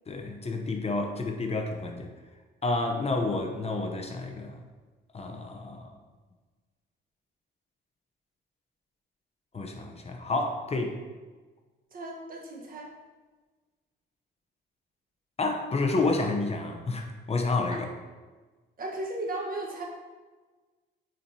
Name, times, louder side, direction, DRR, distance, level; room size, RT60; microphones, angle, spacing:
voice 1, 0.1-2.1 2.6-4.6 5.1-5.9 9.5-10.9 15.4-17.9, left 3 dB, 30° left, 3 dB, 0.8 m, -29 dB
voice 2, 11.9-12.9 17.7-17.8 18.8-19.8, right 2 dB, 45° right, 0 dB, 1.3 m, -35 dB
9.0 x 4.4 x 2.8 m, 1.3 s
cardioid pair, 90°, 20 cm